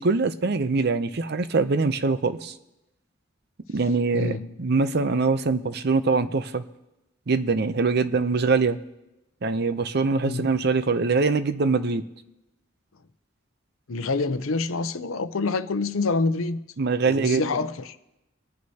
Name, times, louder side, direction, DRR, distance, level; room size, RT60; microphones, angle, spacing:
voice 1, 0.0-2.5 3.7-6.6 7.3-8.8 9.4-12.0 16.8-17.5, right 4 dB, 55° right, 0.6 m, -23 dB
voice 2, 4.1-4.6 10.2-10.5 13.9-16.6 17.0-18.0, left 3 dB, 90° left, 0.7 m, -27 dB
25.0 x 9.5 x 2.9 m
head